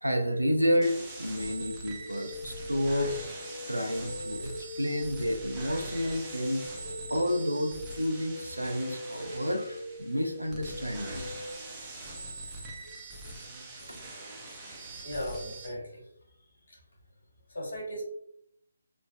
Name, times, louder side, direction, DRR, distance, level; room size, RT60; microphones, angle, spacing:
voice 1, 0.0-3.2 3.7-6.6 7.1-11.3 12.8-13.3 13.8-14.1, equal, 85° right, 4 dB, 0.4 m, -30 dB
sound 1, 0.8-15.7, right 2 dB, 20° right, 0.5 m, -43 dB
sound 2, 2.0-11.5, left 2 dB, 5° left, 0.9 m, -43 dB
voice 2, 15.0-16.0 17.5-18.0, equal, 60° left, -2 dB, 1.2 m, -36 dB
3.1 x 2.0 x 2.3 m, 0.71 s
figure-of-eight pair, 145°, 0 cm